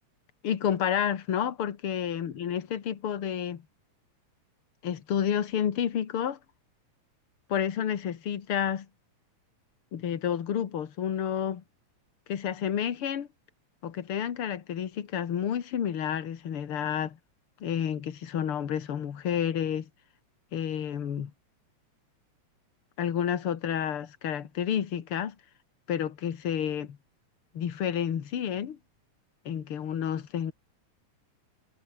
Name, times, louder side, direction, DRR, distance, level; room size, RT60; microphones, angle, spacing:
voice 1, 0.4-3.6 4.8-6.4 7.5-8.9 9.9-11.6 12.3-13.3 13.8-17.2 17.6-19.9 20.5-21.3 23.0-25.4 25.9-27.0 27.5-28.8 29.5-30.5, left 9 dB, 50° left, 2.4 m, -30 dB
omnidirectional pair, 3.5 m